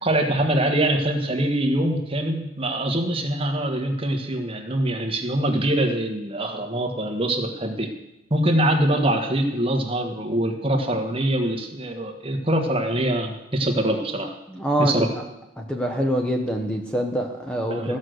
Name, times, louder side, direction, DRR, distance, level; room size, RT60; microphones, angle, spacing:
voice 1, 0.0-7.9 8.3-14.3 14.8-15.1 17.7-18.0, right 1 dB, 25° right, 4 dB, 1.4 m, -23 dB
voice 2, 14.5-15.2 15.6-18.0, right 1 dB, 5° left, 2 dB, 0.9 m, -25 dB
15.0 x 6.4 x 7.9 m, 0.91 s
head